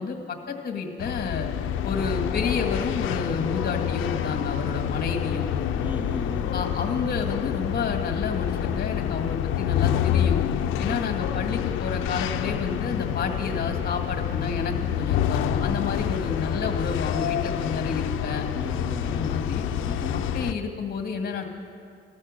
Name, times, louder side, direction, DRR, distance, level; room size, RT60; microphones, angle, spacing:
voice 1, 0.0-1.5 1.8-5.5 6.5-10.4 10.8-18.5 19.0-19.6 20.1-21.4, left 5 dB, 50° left, 4 dB, 2.0 m, -30 dB
sound 1, 1.0-20.5, left 9 dB, 90° left, 0.7 m, -27 dB
voice 2, 5.8-6.6 10.8-11.0 18.5-19.3 19.8-20.1, left 2 dB, 10° right, 2 dB, 2.4 m, -35 dB
15.5 x 13.0 x 6.5 m, 2.3 s
cardioid pair, 90°, 20 cm